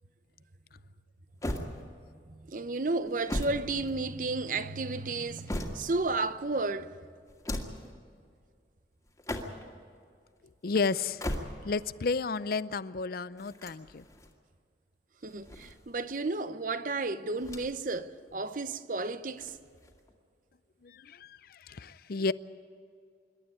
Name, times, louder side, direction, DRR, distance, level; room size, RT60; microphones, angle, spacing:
sound 1, 1.4-2.2 3.0-4.4 5.0-6.1 7.3-7.9 9.1-9.8 11.0-11.9 13.4-14.3 15.2-16.2 17.4-18.0 18.3-18.4 19.3-20.1, left 1 dB, 20° left, 2.1 m, -38 dB
voice 1, 2.3-6.9 15.2-19.6, right 3 dB, 50° right, 0.8 m, -32 dB
voice 2, 10.6-11.2 11.6-14.1 20.8-22.3, left 4 dB, 55° left, 0.5 m, -32 dB
26.5 x 12.0 x 9.9 m
head